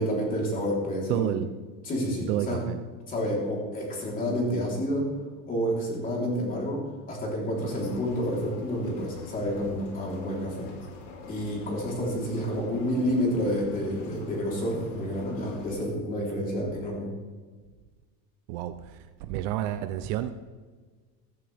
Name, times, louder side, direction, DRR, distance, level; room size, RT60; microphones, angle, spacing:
voice 1, 0.0-1.3 1.8-2.6 3.1-5.1 5.5-10.7 11.3-17.1, equal, 25° left, -2 dB, 3.8 m, -29 dB
voice 2, 1.1-1.5 2.3-2.8 18.5-18.7 19.2-20.3, right 13 dB, 50° right, 10 dB, 0.6 m, -29 dB
sound 1, 7.5-15.7, left 3 dB, 85° left, 5.2 m, -45 dB
15.0 x 14.5 x 3.5 m, 1.4 s
cardioid pair, 175°, 37 cm